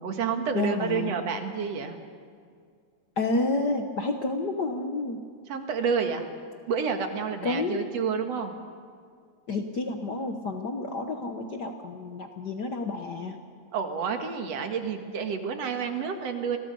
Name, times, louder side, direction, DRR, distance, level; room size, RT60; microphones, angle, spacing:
voice 1, 0.0-2.0 5.5-6.2 6.7-8.5 13.7-16.6, right 6 dB, 60° right, 6 dB, 2.6 m, -29 dB
voice 2, 0.5-1.1 3.2-5.2 7.4-7.9 9.5-13.4, left 3 dB, 60° left, 5 dB, 1.0 m, -30 dB
29.5 x 21.5 x 5.4 m, 2.1 s
omnidirectional pair, 3.5 m